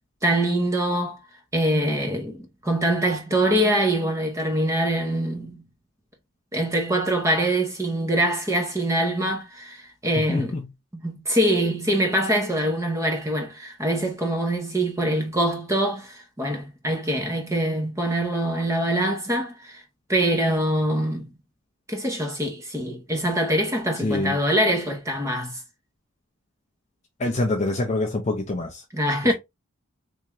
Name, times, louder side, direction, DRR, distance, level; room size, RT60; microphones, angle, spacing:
voice 1, 0.2-1.2 1.5-5.6 6.5-10.5 10.9-19.8 20.1-21.3 21.9-25.6 28.9-29.3, right 1 dB, 15° right, 0.8 m, -24 dB
voice 2, 10.3-10.6 24.0-24.4 27.2-28.8, left 2 dB, 30° left, 0.5 m, -25 dB
3.5 x 2.7 x 3.0 m
head